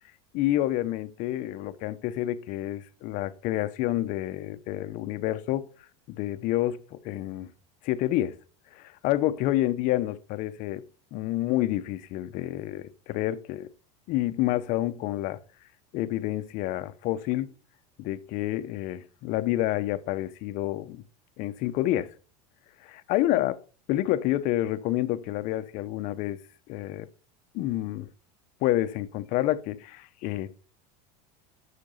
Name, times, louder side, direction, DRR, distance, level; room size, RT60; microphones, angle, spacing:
voice 1, 0.3-5.7 6.1-7.5 7.8-8.4 8.7-10.8 11.1-13.7 14.1-15.4 15.9-17.5 18.0-21.0 21.4-22.1 22.8-23.6 23.9-26.4 26.7-27.1 27.5-28.1 28.6-30.5, left 14 dB, 45° left, 0.9 m, -28 dB
12.0 x 6.8 x 5.5 m
supercardioid pair, 155°, 18 cm